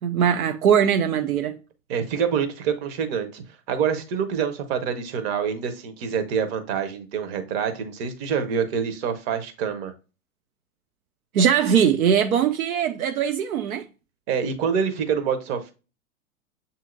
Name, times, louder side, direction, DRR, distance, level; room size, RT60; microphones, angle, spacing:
voice 1, 0.0-1.6 11.3-13.9, right 8 dB, 80° right, 0.6 m, -21 dB
voice 2, 1.9-9.9 14.3-15.7, right 7 dB, 45° right, 1.0 m, -26 dB
7.3 x 2.8 x 2.4 m
figure-of-eight pair, 95°, 42 cm